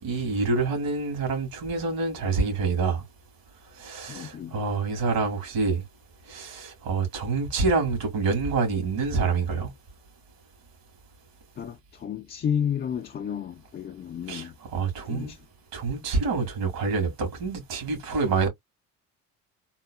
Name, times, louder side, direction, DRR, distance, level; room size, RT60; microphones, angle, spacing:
voice 1, 0.0-3.0 3.8-5.8 6.3-9.7 14.3-15.3 15.7-18.5, right 4 dB, 70° right, 2.5 m, -27 dB
voice 2, 4.1-4.6 11.6-14.5 15.0-15.4, left 8 dB, 30° left, 0.4 m, -31 dB
3.7 x 2.2 x 2.3 m
supercardioid pair, 95°, 37 cm